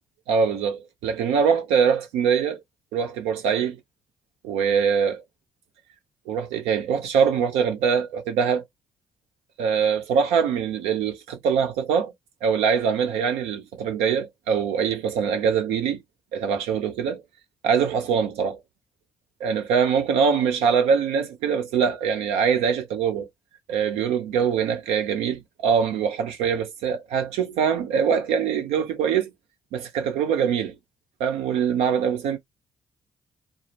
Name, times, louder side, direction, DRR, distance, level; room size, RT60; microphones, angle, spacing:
voice 1, 0.3-2.6 2.9-3.8 4.4-5.2 6.3-8.6 9.6-12.1 12.4-16.0 16.3-17.2 17.6-18.6 19.4-23.3 23.7-29.3 29.7-30.8 31.2-32.4, right 7 dB, 75° right, 0.6 m, -23 dB
2.0 x 2.0 x 3.2 m
hypercardioid pair, 45°, 11 cm